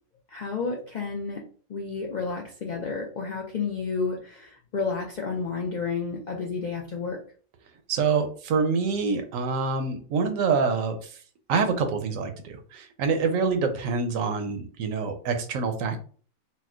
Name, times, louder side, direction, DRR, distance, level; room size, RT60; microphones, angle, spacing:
voice 1, 0.3-1.4 1.7-7.2, left 4 dB, 85° left, 0 dB, 0.4 m, -31 dB
voice 2, 7.9-11.2 11.5-16.0, right 5 dB, 80° right, 7 dB, 1.0 m, -26 dB
4.1 x 2.0 x 2.4 m, 0.43 s
omnidirectional pair, 1.4 m